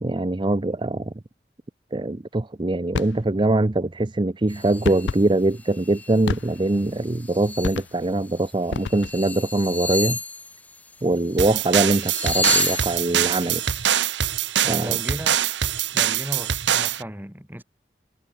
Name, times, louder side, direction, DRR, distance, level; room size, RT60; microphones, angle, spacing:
voice 1, 0.0-1.1 1.9-10.2 11.0-13.6 14.7-15.0, right 2 dB, 25° right, 0.6 m, -23 dB
sound 1, 2.9-3.2 4.8-5.3 6.3-6.8 7.6-8.1 8.7-9.3, left 5 dB, 85° left, 0.4 m, -30 dB
sound 2, 4.5-5.2 5.6-6.2 6.6-7.8 8.3-8.5 8.8-11.5 11.8-13.9, left 3 dB, 10° left, 1.4 m, -31 dB
sound 3, 11.4-17.0, right 10 dB, 90° right, 1.0 m, -24 dB
voice 2, 14.6-15.4 15.9-17.6, equal, 10° right, 5.0 m, -35 dB
head